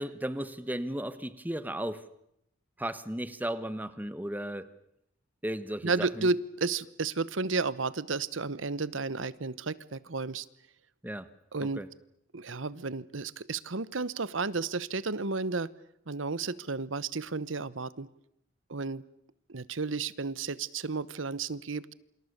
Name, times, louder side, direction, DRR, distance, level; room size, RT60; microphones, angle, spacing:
voice 1, 0.0-2.0 2.8-4.7 5.4-6.3 11.0-11.3 11.6-11.9, right 1 dB, 10° right, 13 dB, 1.3 m, -35 dB
voice 2, 5.8-10.4 11.5-11.8 12.3-15.7 16.1-18.1 18.7-19.0 19.5-21.9, right 4 dB, 80° right, 18 dB, 1.1 m, -32 dB
28.0 x 26.5 x 6.7 m, 0.76 s
head